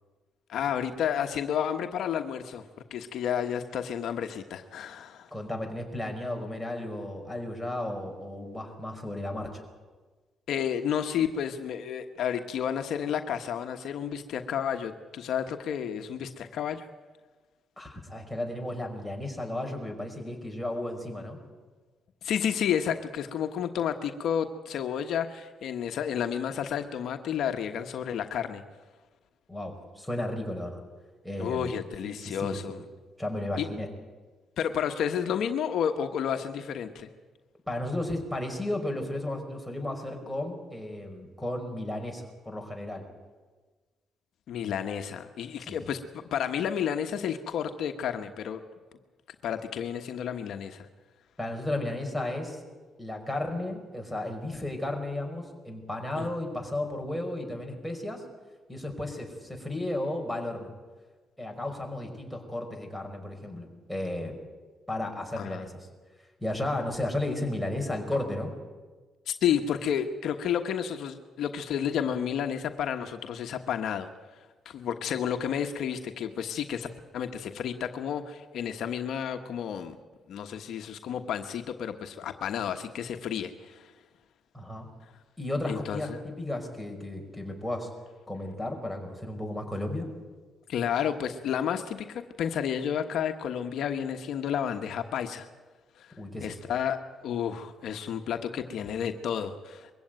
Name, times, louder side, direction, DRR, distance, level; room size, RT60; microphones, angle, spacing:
voice 1, 0.5-2.6 2.9-5.3 10.5-16.9 22.2-28.6 31.4-32.8 33.6-33.7 34.6-37.1 44.5-48.6 49.4-50.9 56.2-56.3 65.4-65.6 69.3-74.1 74.6-80.0 80.3-83.9 85.7-86.2 90.7-95.5 96.0-96.1 96.4-97.0 97.2-99.9, left 8 dB, 75° left, 7 dB, 1.3 m, -31 dB
voice 2, 5.3-9.6 17.8-21.4 29.5-30.8 31.2-31.7 32.0-32.6 33.2-33.9 37.7-43.0 45.6-45.8 51.4-52.6 53.0-58.2 58.7-60.7 61.4-64.3 64.9-65.9 66.4-68.5 84.5-84.9 85.4-87.9 88.3-90.1 96.2-96.6, left 1 dB, ahead, 1 dB, 5.2 m, -34 dB
22.5 x 15.5 x 9.2 m, 1.3 s
cardioid pair, 90°, 0 cm